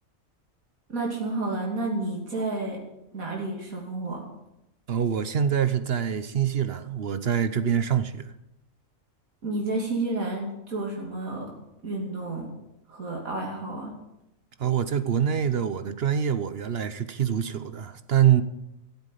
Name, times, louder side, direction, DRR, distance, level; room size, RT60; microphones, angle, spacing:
voice 1, 0.9-2.8 3.1-4.2 9.4-11.5 11.8-12.5 12.9-13.9, right 2 dB, 90° right, 3.1 m, -30 dB
voice 2, 4.9-8.3 14.6-18.4, right 9 dB, 55° right, 0.9 m, -25 dB
14.0 x 8.2 x 8.3 m
omnidirectional pair, 1.4 m